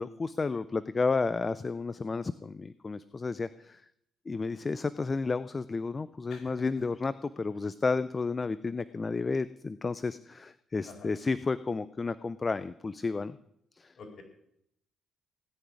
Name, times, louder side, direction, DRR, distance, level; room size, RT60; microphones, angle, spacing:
voice 1, 0.0-3.8 4.3-13.4 13.8-13.9, left 4 dB, 30° left, 15 dB, 0.5 m, -32 dB
voice 2, 6.3-6.8 10.9-11.1 14.0-14.2, left 4 dB, 55° left, -1 dB, 4.5 m, -48 dB
17.5 x 6.2 x 9.6 m, 0.74 s
cardioid pair, 90°, 0 cm